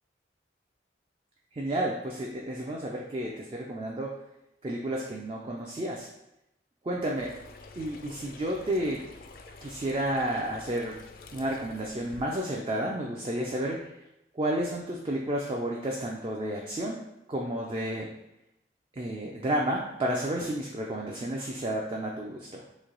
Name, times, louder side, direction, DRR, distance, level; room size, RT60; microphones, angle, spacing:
voice 1, 1.5-4.2 4.6-6.1 6.9-7.3 7.8-9.0 9.6-11.0 11.3-13.9 14.3-17.0 17.3-18.1 18.9-22.6, right 1 dB, 30° right, -2 dB, 0.3 m, -31 dB
sound 1, 7.2-12.2, left 3 dB, 55° left, 0.3 m, -49 dB
3.1 x 2.6 x 3.7 m, 0.85 s
head